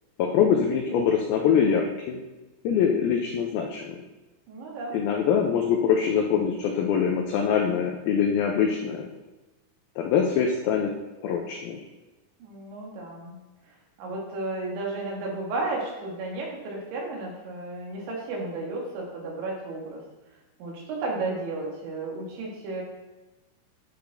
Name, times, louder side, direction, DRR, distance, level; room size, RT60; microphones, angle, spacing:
voice 1, 0.2-2.2 2.6-4.0 4.9-9.1 10.0-10.9 11.2-11.8, left 7 dB, 90° left, 1 dB, 2.1 m, -24 dB
voice 2, 4.5-5.0 12.4-13.4 14.0-20.0 20.6-22.8, right 2 dB, 85° right, -2 dB, 4.1 m, -33 dB
10.0 x 6.5 x 3.5 m, 1.1 s
omnidirectional pair, 5.2 m